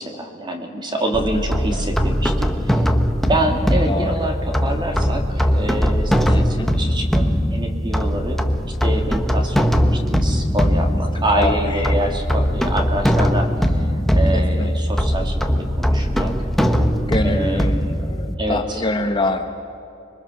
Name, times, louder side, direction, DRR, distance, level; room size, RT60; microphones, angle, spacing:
voice 1, 0.0-2.8 3.3-8.4 8.8-16.3 17.2-17.9 18.4-18.8, right 1 dB, 25° right, 3 dB, 2.5 m, -26 dB
sound 1, 1.1-18.3, equal, ahead, 1.1 m, -20 dB
voice 2, 1.3-1.8 3.8-4.1 6.3-6.7 10.4-10.5 11.4-12.0 14.3-14.7 17.1-19.5, left 2 dB, 25° left, 5 dB, 1.1 m, -25 dB
26.5 x 23.0 x 6.3 m, 2.7 s
head